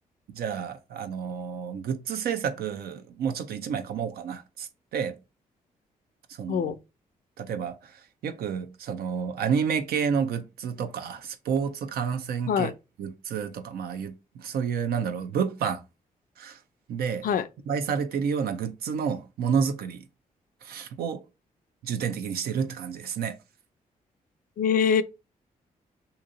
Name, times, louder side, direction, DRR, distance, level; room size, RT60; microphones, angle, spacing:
voice 1, 0.3-5.2 6.4-6.7 7.4-7.9 8.2-12.7 13.0-15.8 16.4-16.6 16.9-17.3 17.7-20.1 20.6-21.2 21.8-23.3, right 6 dB, 80° right, 0.6 m, -30 dB
voice 2, 24.6-25.0, left 7 dB, 65° left, 0.4 m, -23 dB
2.9 x 2.6 x 3.8 m
cardioid pair, 60°, 16 cm